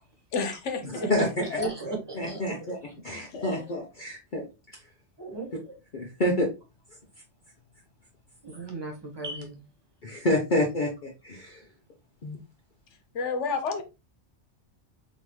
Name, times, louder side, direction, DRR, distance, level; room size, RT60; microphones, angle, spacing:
voice 1, 0.3-1.1 1.5-1.7 3.1-3.5 13.1-13.8, left 4 dB, 85° left, 1.2 m, -31 dB
voice 2, 1.0-2.8 5.2-5.7 8.4-9.6, right 2 dB, 20° right, 1.4 m, -35 dB
voice 3, 2.2-2.8 3.0-4.4 5.9-6.5 10.0-11.6 12.2-12.4, left 1 dB, 45° left, 0.9 m, -28 dB
3.9 x 3.6 x 3.1 m
omnidirectional pair, 1.2 m